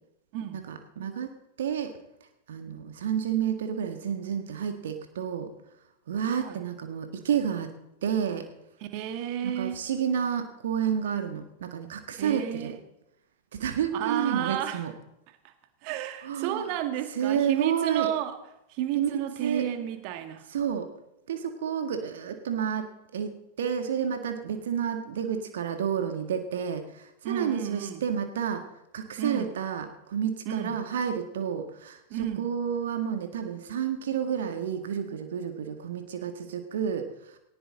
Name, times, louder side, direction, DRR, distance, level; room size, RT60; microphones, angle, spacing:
voice 1, 0.5-2.0 2.5-5.5 6.1-7.7 8.0-8.5 9.4-12.8 13.5-14.9 16.2-16.6 17.1-18.1 18.9-19.6 20.5-20.9 21.3-22.9 23.1-28.7 28.9-37.4, right 8 dB, 60° right, 6 dB, 1.6 m, -30 dB
voice 2, 8.8-9.8 12.2-12.7 13.9-14.8 15.4-15.5 15.8-18.4 18.7-20.5 27.2-28.0 29.2-29.5 30.5-30.8 32.1-32.5, right 11 dB, 45° right, 8 dB, 1.9 m, -32 dB
18.0 x 18.0 x 3.9 m, 0.87 s
figure-of-eight pair, 90°, 0 cm